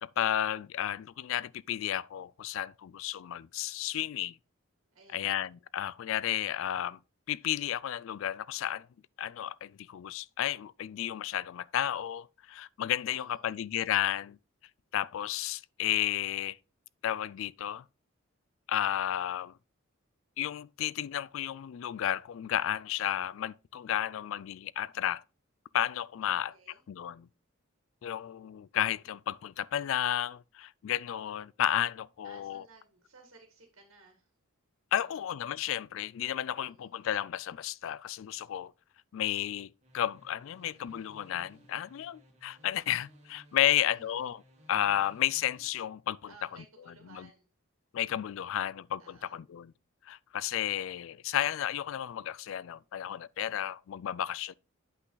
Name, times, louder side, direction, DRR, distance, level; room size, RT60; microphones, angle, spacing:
voice 1, 0.0-4.4 5.1-7.0 7.3-8.9 9.2-14.4 14.9-16.6 17.0-17.8 18.7-19.6 20.4-25.2 25.7-26.5 26.9-27.3 28.0-32.6 34.9-38.7 39.1-44.4 44.7-46.3 47.1-47.3 47.9-49.7 50.1-54.5, left 11 dB, 65° left, 0.3 m, -32 dB
voice 2, 4.9-5.3 13.1-13.6 26.2-26.8 32.2-34.3 35.1-35.2 36.5-36.9 43.6-44.1 46.3-47.5 48.4-48.7 49.0-49.4, right 3 dB, 75° right, 1.9 m, -57 dB
sound 1, 39.8-45.6, equal, 35° right, 2.0 m, -60 dB
8.3 x 5.7 x 3.9 m
head